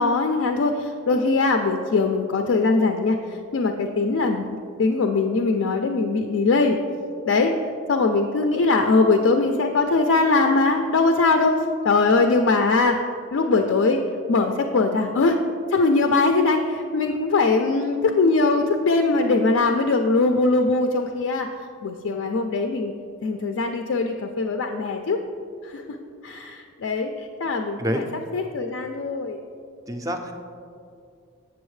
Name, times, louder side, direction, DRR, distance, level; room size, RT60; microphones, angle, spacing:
voice 1, 0.0-6.8 7.3-7.6 7.9-11.6 11.8-13.0 13.3-14.0 14.3-15.4 15.7-21.5 21.8-22.9 23.2-25.2 25.6-25.8 26.2-28.1 28.3-29.4, left 3 dB, 65° left, 4 dB, 0.4 m, -21 dB
voice 2, 29.9-30.3, equal, 15° right, 5 dB, 0.3 m, -27 dB
7.1 x 7.0 x 3.2 m, 2.4 s
head